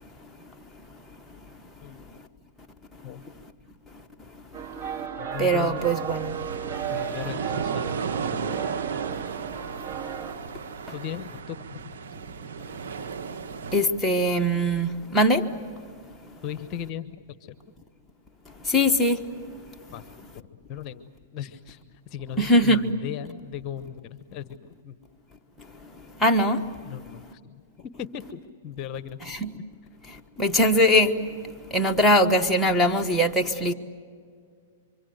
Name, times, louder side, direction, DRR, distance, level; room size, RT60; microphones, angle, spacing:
voice 1, 1.8-2.1 3.0-3.3 5.2-5.8 6.9-8.6 10.9-12.0 16.4-17.5 19.9-20.0 20.3-21.8 22.1-25.0 26.8-27.6 28.0-29.4, left 9 dB, 40° left, 1.0 m, -37 dB
sound 1, 4.5-10.3, right 8 dB, 35° right, 2.6 m, -34 dB
voice 2, 5.4-6.4 13.7-15.5 18.6-19.3 22.4-22.9 26.2-26.7 29.2-29.5 30.1-31.2 31.7-33.7, equal, 5° left, 1.4 m, -21 dB
sound 2, 5.8-13.8, right 6 dB, 75° right, 1.2 m, -34 dB
25.5 x 25.5 x 7.9 m
hypercardioid pair, 125°, 0 cm